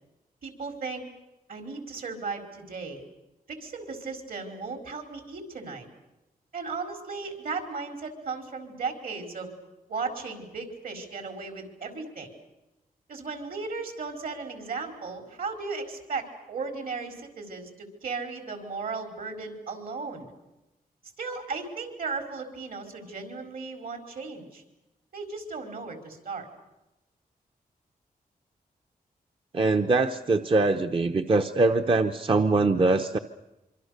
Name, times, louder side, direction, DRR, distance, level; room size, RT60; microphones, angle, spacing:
voice 1, 0.4-1.0 1.5-3.0 3.5-5.9 6.5-9.5 9.9-12.3 13.1-20.3 21.2-24.6 25.1-26.5, right 4 dB, 65° right, 5 dB, 5.0 m, -36 dB
voice 2, 29.5-33.2, right 3 dB, 35° right, 6 dB, 0.9 m, -23 dB
26.0 x 25.0 x 6.7 m, 0.98 s
wide cardioid pair, 145°, 16 cm